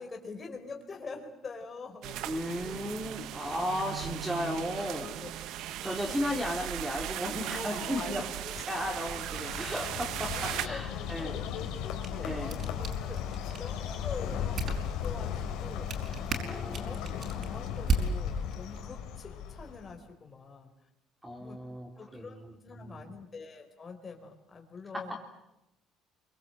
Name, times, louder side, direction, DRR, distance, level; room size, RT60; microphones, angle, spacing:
voice 1, 0.0-2.2 3.7-3.9 5.0-5.3 6.0-6.2 7.2-8.8 9.7-10.8 11.1-11.4 11.7-14.6 15.0-15.9 16.5-20.7 21.4-21.6 22.0-25.2, left 4 dB, 25° left, 3 dB, 4.1 m, -45 dB
sound 1, 2.0-10.7, right 12 dB, 65° right, 1.0 m, -38 dB
voice 2, 2.3-5.1 5.8-8.3 8.7-11.3 12.2-12.6 16.3-17.0 21.2-23.0 25.1-25.3, equal, 5° right, 0 dB, 3.6 m, -35 dB
Bird, 8.5-20.0, left 8 dB, 75° left, 3.9 m, -36 dB
sound 2, 11.7-18.8, right 3 dB, 35° right, 5.1 m, -37 dB
30.0 x 23.5 x 7.8 m, 0.89 s
cardioid pair, 145°, 0 cm